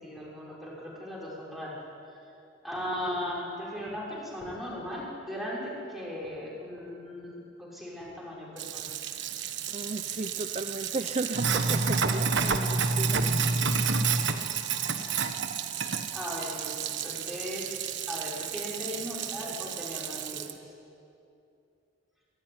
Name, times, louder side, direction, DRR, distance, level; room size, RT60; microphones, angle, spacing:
voice 1, 0.0-1.8 2.2-2.3 2.6-8.9 16.1-20.7, left 1 dB, ahead, -5 dB, 5.8 m, -38 dB
Sink (filling or washing), 8.6-20.5, right 5 dB, 65° right, 1.3 m, -30 dB
voice 2, 9.7-13.3 14.3-14.6, right 3 dB, 35° right, 7 dB, 0.7 m, -35 dB
24.5 x 14.0 x 9.8 m, 2.7 s
head